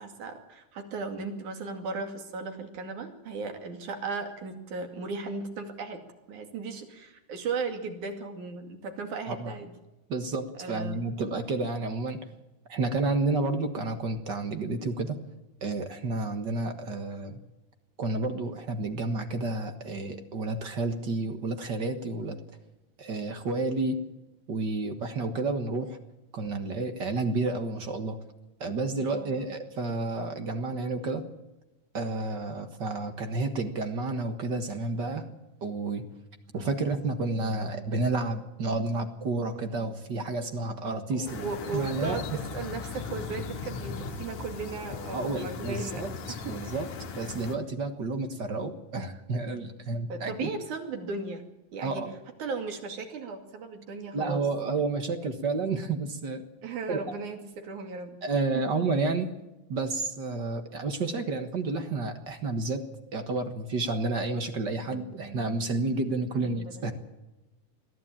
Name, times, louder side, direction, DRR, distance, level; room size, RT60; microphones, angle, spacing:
voice 1, 0.0-6.0 6.3-9.7 10.6-11.0 29.1-29.5 41.1-42.2 42.5-46.7 50.1-51.4 51.7-52.0 52.4-54.4 56.6-58.2 58.5-58.6 66.6-66.9, right 4 dB, 80° right, 5 dB, 3.9 m, -36 dB
voice 2, 10.1-12.2 12.7-15.2 15.6-17.4 18.0-22.4 23.0-24.0 24.5-26.0 26.3-28.2 28.6-31.3 31.9-35.3 35.6-36.1 36.5-41.5 41.7-42.2 45.1-46.1 46.5-46.9 47.1-50.5 51.8-52.1 54.1-56.5 56.9-57.0 58.2-59.3 59.7-62.8 63.1-66.9, right 3 dB, 45° right, 7 dB, 1.7 m, -30 dB
sound 1, 41.3-47.6, left 4 dB, 70° left, 3.1 m, -38 dB
22.5 x 14.5 x 8.8 m, 1.0 s
omnidirectional pair, 3.4 m